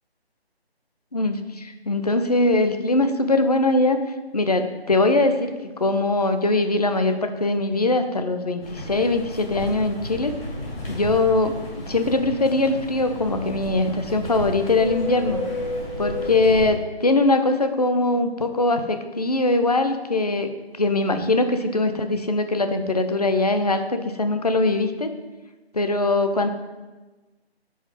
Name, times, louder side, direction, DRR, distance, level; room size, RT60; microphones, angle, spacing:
voice 1, 1.1-4.0 4.3-10.3 10.9-11.6 11.9-15.4 16.0-20.5 20.8-25.1 25.7-26.5, left 2 dB, 40° left, 8 dB, 0.4 m, -21 dB
sound 1, 8.6-16.7, left 1 dB, 65° left, 2.2 m, -32 dB
5.5 x 4.2 x 4.8 m, 1.2 s
figure-of-eight pair, 170°, 32 cm